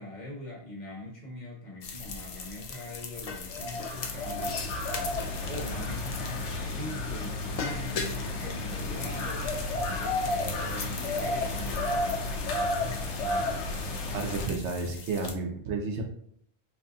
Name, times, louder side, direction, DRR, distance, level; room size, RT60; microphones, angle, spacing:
voice 1, 0.0-5.0 5.5-9.5 9.8-12.2, left 1 dB, 45° left, -3 dB, 1.1 m, -42 dB
sound 1, 1.8-15.3, left 5 dB, 65° left, 0.3 m, -41 dB
sound 2, 3.3-14.5, left 2 dB, 90° left, 1.0 m, -32 dB
voice 2, 14.1-16.0, right 4 dB, 85° right, 2 dB, 1.0 m, -32 dB
4.2 x 2.7 x 2.3 m, 0.66 s
omnidirectional pair, 1.1 m